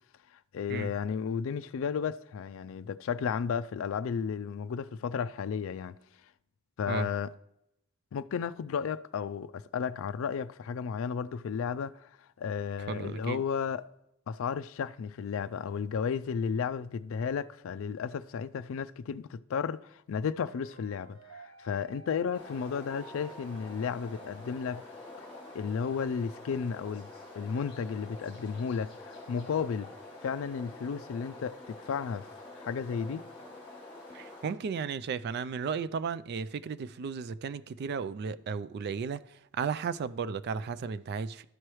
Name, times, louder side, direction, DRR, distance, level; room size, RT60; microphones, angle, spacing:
voice 1, 0.5-5.9 6.8-7.3 8.1-12.1 12.4-13.9 14.3-24.8 25.5-27.1 27.3-29.9 30.2-32.3 32.6-33.2, left 6 dB, 65° left, 0.3 m, -33 dB
voice 2, 12.9-13.4 34.1-39.2 39.5-41.4, right 5 dB, 50° right, 0.3 m, -34 dB
sound 1, 20.4-25.6, right 2 dB, 75° right, 0.7 m, -53 dB
sound 2, 22.3-34.5, left 2 dB, 25° left, 1.8 m, -47 dB
12.5 x 4.8 x 3.0 m
head